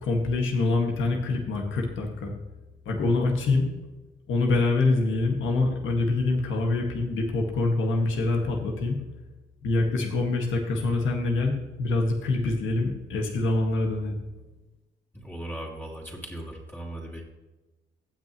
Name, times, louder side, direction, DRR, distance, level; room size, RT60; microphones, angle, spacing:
voice 1, 0.0-2.3 2.9-3.7 4.3-9.0 9.6-14.2, left 2 dB, 75° left, 1 dB, 1.9 m, -25 dB
voice 2, 15.1-17.2, right 1 dB, 10° left, -3 dB, 2.6 m, -38 dB
16.5 x 6.2 x 3.1 m, 1.1 s
cardioid pair, 90°, 20 cm